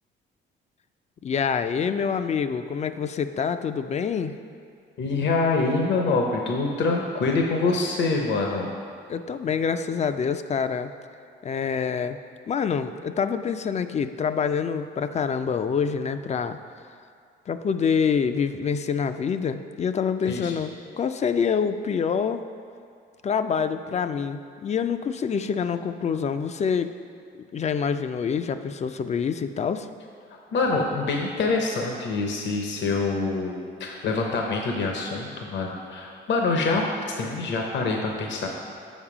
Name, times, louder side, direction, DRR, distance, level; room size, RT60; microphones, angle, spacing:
voice 1, 1.2-4.4 9.1-10.9 11.4-12.2 12.5-16.6 17.5-22.4 23.2-26.9 27.3-29.9, left 6 dB, 35° left, 10 dB, 0.3 m, -26 dB
voice 2, 5.0-8.7 20.3-20.5 30.5-36.9 37.2-38.5, left 3 dB, 65° left, 1 dB, 0.8 m, -25 dB
7.3 x 5.3 x 4.9 m, 2.3 s
cardioid pair, 90°, 20 cm